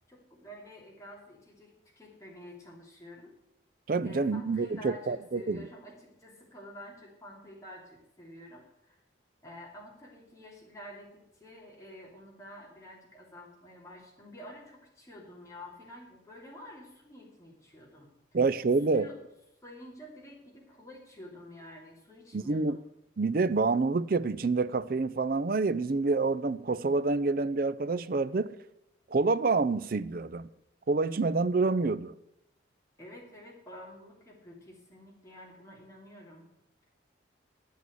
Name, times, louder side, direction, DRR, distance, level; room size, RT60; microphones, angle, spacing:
voice 1, 0.1-3.3 4.0-9.0 9.4-18.1 18.9-19.2 19.6-22.8 33.0-36.5, equal, 15° left, 2.8 m, -49 dB
voice 2, 3.9-5.6 18.3-19.1 22.3-22.8 23.2-28.5 29.1-30.5 30.9-32.1, right 3 dB, 45° right, 0.5 m, -27 dB
11.0 x 8.4 x 7.9 m
head